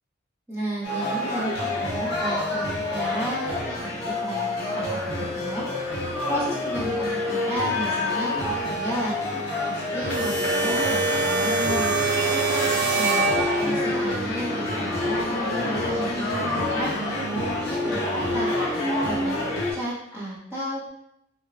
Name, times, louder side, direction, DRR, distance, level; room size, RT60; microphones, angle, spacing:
voice 1, 0.5-9.2 9.6-12.1 12.9-13.3 13.5-18.5 19.0-20.9, right 1 dB, 10° right, -9 dB, 0.8 m, -33 dB
sound 1, 0.8-19.7, left 1 dB, 50° left, 0.7 m, -27 dB
sound 2, 10.1-14.0, right 3 dB, 60° right, 0.4 m, -25 dB
2.9 x 2.2 x 2.5 m, 0.80 s
head